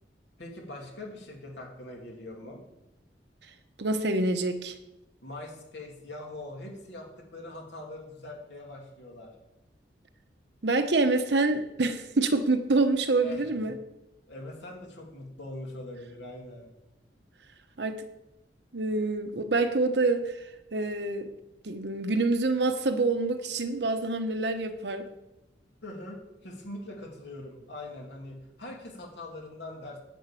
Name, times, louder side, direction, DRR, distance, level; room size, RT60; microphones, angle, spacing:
voice 1, 0.4-2.6 5.2-9.3 13.2-13.7 14.3-16.7 25.8-30.0, left 1 dB, 80° left, 0 dB, 2.7 m, -42 dB
voice 2, 3.8-4.7 10.6-13.8 17.8-18.0 18.7-20.4 20.7-21.3 21.6-25.1, right 3 dB, 65° right, 8 dB, 1.0 m, -26 dB
10.0 x 5.4 x 8.4 m, 0.95 s
head